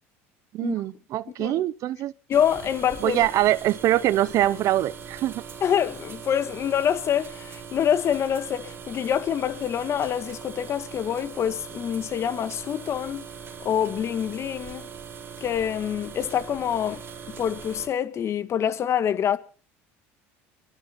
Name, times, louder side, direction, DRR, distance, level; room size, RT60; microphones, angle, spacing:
voice 1, 0.5-2.1 3.0-5.4, right 14 dB, 55° right, 0.7 m, -23 dB
voice 2, 2.3-3.2 5.6-13.3 13.6-14.9 15.4-17.0 17.3-19.4, left 9 dB, 45° left, 1.6 m, -26 dB
sound 1, 2.3-17.9, right 6 dB, 35° right, 3.8 m, -41 dB
27.0 x 11.5 x 4.3 m
supercardioid pair, 90°, 7 cm